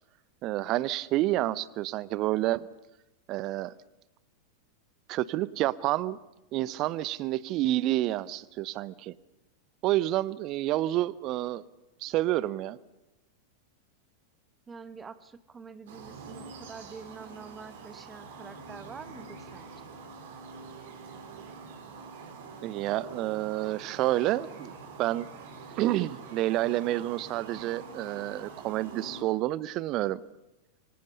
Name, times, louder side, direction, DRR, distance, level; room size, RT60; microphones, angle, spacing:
voice 1, 0.4-2.7 3.3-3.7 5.1-6.2 6.5-9.1 9.8-11.6 12.0-12.8 22.6-24.7 25.0-25.3 25.8-30.2, right 15 dB, 40° right, 0.8 m, -29 dB
voice 2, 14.7-19.7, right 5 dB, 15° right, 1.0 m, -46 dB
sound 1, 15.9-29.2, right 4 dB, 55° right, 4.3 m, -45 dB
26.0 x 25.0 x 5.5 m
figure-of-eight pair, 90°, 0 cm